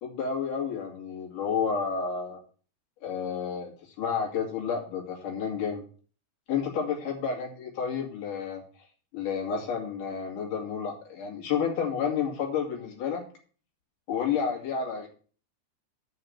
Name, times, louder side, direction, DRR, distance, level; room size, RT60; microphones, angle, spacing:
voice 1, 0.0-2.4 3.0-3.7 4.0-5.8 6.5-8.6 9.1-13.2 14.1-15.1, left 6 dB, 55° left, 1 dB, 3.5 m, -30 dB
8.4 x 5.7 x 7.8 m, 0.41 s
omnidirectional pair, 5.1 m